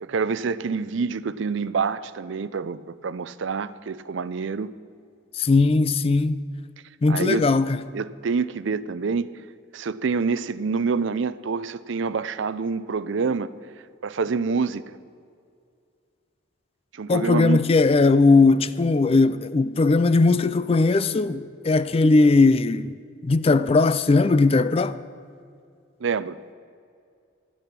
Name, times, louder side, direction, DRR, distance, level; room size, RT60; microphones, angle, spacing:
voice 1, 0.0-4.7 7.1-7.4 7.9-9.3 9.7-13.5 14.0-15.0 16.9-17.6 26.0-26.4, right 5 dB, 65° right, 0.5 m, -27 dB
voice 2, 5.4-6.4 7.0-7.8 17.1-22.9 23.2-25.0, left 3 dB, 30° left, 0.4 m, -19 dB
12.5 x 12.0 x 5.9 m
head